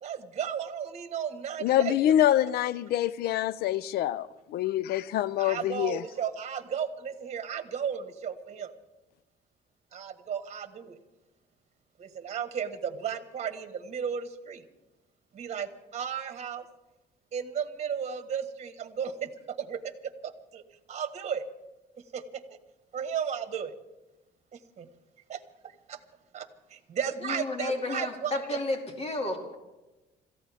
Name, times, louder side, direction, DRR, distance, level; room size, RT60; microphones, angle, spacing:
voice 1, 0.0-1.9 5.4-8.7 9.9-11.0 12.0-14.6 15.3-16.6 17.3-20.6 20.9-21.5 22.1-22.6 22.9-23.7 24.5-24.9 25.3-25.4 25.9-26.0 26.3-28.4, right 7 dB, 40° right, 1.4 m, -34 dB
voice 2, 1.6-6.0, left 12 dB, 70° left, 0.5 m, -26 dB
voice 3, 27.2-29.6, left 2 dB, 40° left, 2.4 m, -32 dB
27.0 x 15.0 x 3.5 m
cardioid pair, 110°, 17 cm